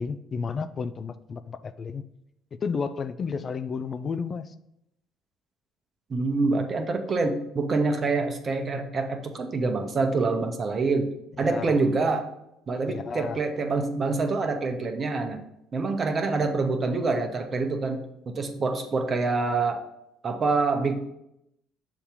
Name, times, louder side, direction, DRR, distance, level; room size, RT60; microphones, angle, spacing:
voice 1, 0.0-2.0 2.6-4.5 11.4-11.8 12.9-13.4, left 5 dB, 40° left, 12 dB, 0.4 m, -32 dB
voice 2, 6.1-12.3 12.7-15.4 15.7-19.9 20.2-21.0, right 3 dB, 40° right, 5 dB, 0.9 m, -26 dB
7.0 x 2.9 x 5.2 m, 0.80 s
hypercardioid pair, 55°, 0 cm